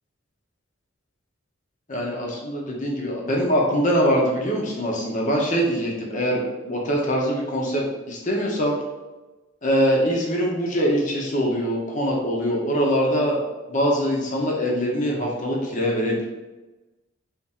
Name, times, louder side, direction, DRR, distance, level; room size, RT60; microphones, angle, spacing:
voice 1, 1.9-8.7 9.6-13.4 13.7-16.3, equal, 35° left, -2 dB, 0.8 m, -23 dB
3.6 x 2.6 x 4.1 m, 1.1 s
head